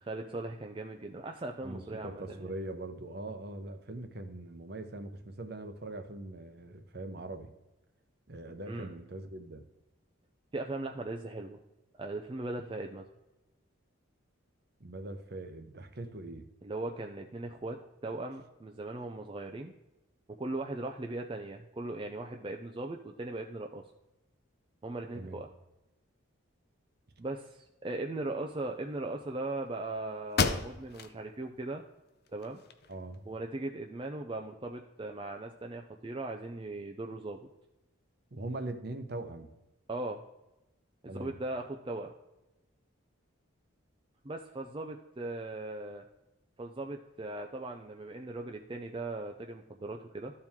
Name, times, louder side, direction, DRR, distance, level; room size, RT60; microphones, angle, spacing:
voice 1, 0.0-2.5 8.7-8.9 10.5-11.6 12.0-13.0 16.6-19.7 20.4-23.8 24.8-25.5 27.2-31.8 32.3-32.6 33.3-37.4 39.9-40.2 41.0-42.1 44.2-46.0 46.6-50.3, right 2 dB, 25° right, 3 dB, 0.4 m, -39 dB
voice 2, 1.6-7.5 8.3-9.6 14.8-16.4 25.1-25.4 32.9-33.2 38.3-39.5 41.1-41.3, right 2 dB, 50° right, 7 dB, 0.8 m, -41 dB
sound 1, 29.8-29.9 30.3-31.2 31.6-31.7 32.3-33.2, left 4 dB, 50° left, 0.6 m, -32 dB
13.5 x 4.5 x 3.6 m, 0.97 s
head